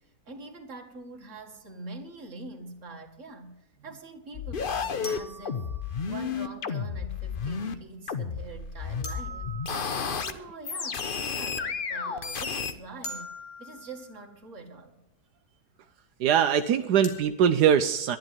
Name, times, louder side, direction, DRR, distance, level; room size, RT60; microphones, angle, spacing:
voice 1, 0.3-5.7 6.1-13.3 13.6-15.0, right 3 dB, 50° right, 1 dB, 2.2 m, -44 dB
sound 1, 1.6-1.7 5.0-6.3 9.0-10.4 13.0-14.3 17.0-17.2, equal, 65° left, 2.8 m, -42 dB
sound 2, 4.3-7.8 8.1-10.3 10.6-12.7, left 6 dB, 40° left, 0.9 m, -32 dB
voice 2, 16.2-18.2, right 8 dB, 85° right, 8 dB, 1.3 m, -22 dB
12.0 x 11.5 x 7.5 m, 0.90 s
omnidirectional pair, 1.7 m